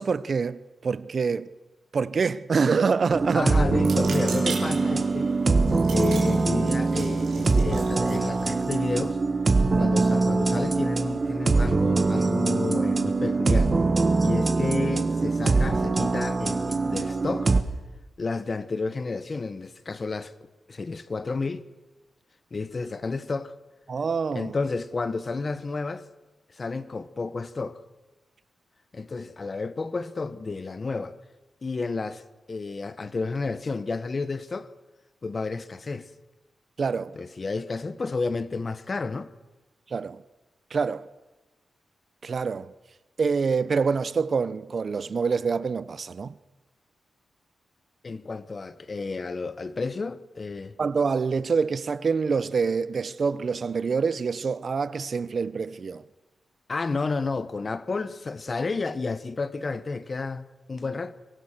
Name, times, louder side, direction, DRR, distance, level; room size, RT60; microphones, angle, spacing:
voice 1, 0.0-1.5 1.9-3.6 9.6-9.9 23.9-24.6 36.8-37.1 39.9-40.2 40.7-41.1 42.2-42.7 43.2-46.3 50.8-56.0, right 5 dB, 50° right, 0.7 m, -26 dB
sound 1, 3.1-17.6, right 3 dB, 35° right, 1.3 m, -23 dB
voice 2, 3.3-5.3 5.9-9.2 9.8-13.8 14.2-17.5 18.2-20.3 20.7-21.6 22.5-23.6 24.3-26.1 26.5-27.8 28.9-31.2 31.6-34.7 35.2-36.1 37.1-39.3 48.0-50.8 56.7-61.1, left 3 dB, 40° left, 1.1 m, -31 dB
sound 2, 3.7-9.1, right 5 dB, 85° right, 4.1 m, -40 dB
24.0 x 18.0 x 6.7 m
wide cardioid pair, 100°, 0 cm